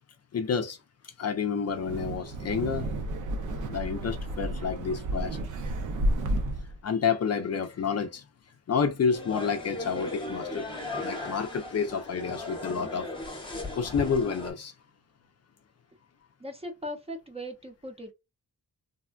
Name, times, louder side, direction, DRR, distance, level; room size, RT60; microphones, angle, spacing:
voice 1, 0.3-0.8 1.0-2.9 3.6-5.4 6.8-8.2 8.7-13.1 13.7-14.7, left 6 dB, 50° left, 0.5 m, -29 dB
Wind, 1.7-6.8, right 1 dB, 65° right, 0.6 m, -31 dB
sound 1, 9.1-14.5, left 2 dB, 15° left, 0.8 m, -37 dB
voice 2, 16.4-18.1, equal, 20° right, 0.6 m, -39 dB
3.4 x 2.2 x 2.3 m
wide cardioid pair, 150°, 32 cm